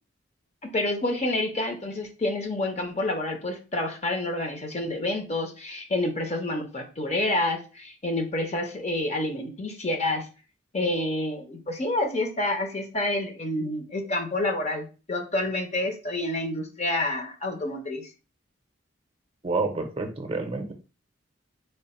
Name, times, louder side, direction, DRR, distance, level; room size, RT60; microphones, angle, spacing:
voice 1, 0.6-10.3 10.7-18.1, left 1 dB, 35° left, 4 dB, 0.6 m, -28 dB
voice 2, 19.4-20.7, right 3 dB, 30° right, 5 dB, 0.5 m, -28 dB
3.2 x 2.1 x 4.1 m, 0.34 s
head